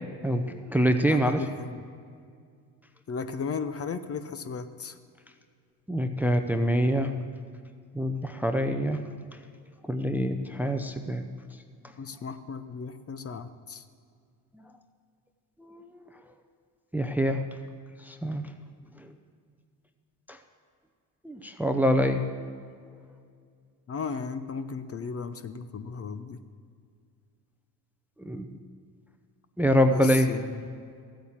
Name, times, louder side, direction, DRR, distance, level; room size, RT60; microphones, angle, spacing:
voice 1, 0.2-1.4 5.9-7.1 7.9-9.0 9.9-11.2 15.6-15.8 16.9-17.4 18.1-18.4 21.2-22.2 28.2-28.5 29.6-30.3, equal, 5° right, 7 dB, 0.6 m, -25 dB
voice 2, 1.1-1.8 3.1-5.0 12.0-13.8 23.9-26.4 29.9-30.8, left 5 dB, 30° left, 11 dB, 0.7 m, -35 dB
14.5 x 9.1 x 7.3 m, 2.2 s
supercardioid pair, 95°, 47 cm